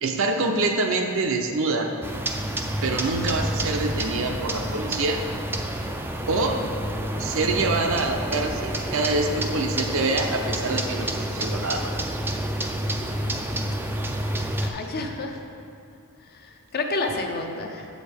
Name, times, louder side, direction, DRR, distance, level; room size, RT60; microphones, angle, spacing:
voice 1, 0.0-1.9 2.8-5.2 6.3-6.7 7.2-12.0, right 3 dB, 60° right, 4 dB, 0.6 m, -25 dB
sound 1, 2.0-14.7, right 1 dB, 10° right, 0.3 m, -29 dB
voice 2, 14.6-15.4 16.3-17.9, left 2 dB, 45° left, 3 dB, 0.6 m, -30 dB
7.8 x 6.3 x 3.5 m, 2.5 s
head